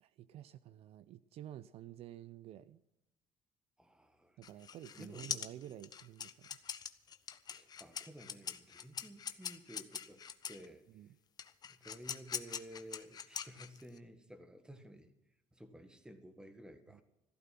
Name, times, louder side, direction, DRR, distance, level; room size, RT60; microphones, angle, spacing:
voice 1, 0.0-2.8 4.4-6.6 10.9-11.2 16.9-17.0, right 12 dB, 60° right, 15 dB, 0.6 m, -51 dB
voice 2, 3.8-4.4 5.0-5.4 7.5-10.8 11.7-15.1 15.5-17.0, equal, 5° right, 8 dB, 1.7 m, -53 dB
sound 1, 4.4-10.7 11.4-14.0, left 7 dB, 35° left, 0.9 m, -43 dB
15.0 x 12.5 x 6.0 m, 0.89 s
cardioid pair, 125°, 11 cm